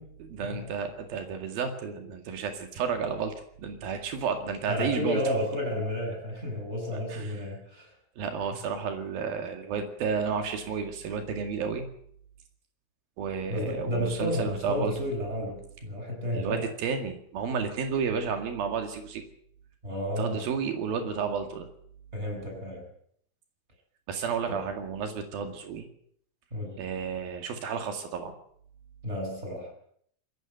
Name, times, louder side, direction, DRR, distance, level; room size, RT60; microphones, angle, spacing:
voice 1, 0.2-5.2 7.1-7.3 8.2-11.9 13.2-14.9 16.3-19.2 20.2-21.7 24.1-25.9 26.8-28.3, right 6 dB, 90° right, 6 dB, 4.0 m, -32 dB
voice 2, 4.7-7.9 13.5-16.6 19.8-20.5 22.1-22.9 24.5-24.6 26.5-26.8 29.0-29.7, left 1 dB, 15° right, 2 dB, 8.0 m, -31 dB
21.5 x 16.5 x 9.1 m, 0.66 s
omnidirectional pair, 4.1 m